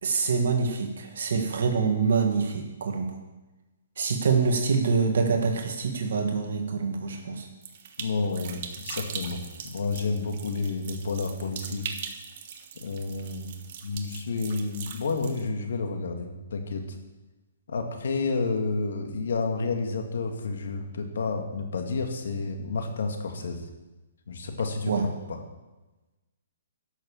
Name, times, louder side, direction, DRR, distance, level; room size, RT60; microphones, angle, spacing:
voice 1, 0.0-3.1 4.0-7.5 24.9-25.0, right 5 dB, 70° right, 3 dB, 1.8 m, -25 dB
sound 1, 7.6-15.4, right 7 dB, 45° right, 1.3 m, -41 dB
voice 2, 8.0-11.9 12.8-16.8 17.7-23.6 24.3-25.4, left 3 dB, 75° left, 4 dB, 2.1 m, -30 dB
12.0 x 6.7 x 7.2 m, 1.1 s
hypercardioid pair, 160°, 0 cm